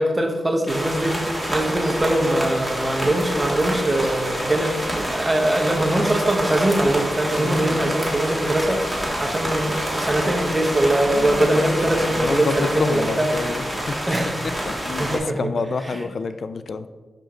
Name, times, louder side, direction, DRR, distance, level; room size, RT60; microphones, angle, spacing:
voice 1, 0.0-13.3 14.1-14.3 14.9-15.5 15.8-16.0, right 1 dB, 20° right, 2 dB, 0.9 m, -22 dB
sound 1, 0.7-15.2, equal, ahead, 1.9 m, -27 dB
voice 2, 7.4-8.1 11.0-11.7 12.1-14.2 14.8-16.9, left 4 dB, 60° left, 12 dB, 0.3 m, -28 dB
6.0 x 5.0 x 3.7 m, 1.4 s
cardioid pair, 80°, 0 cm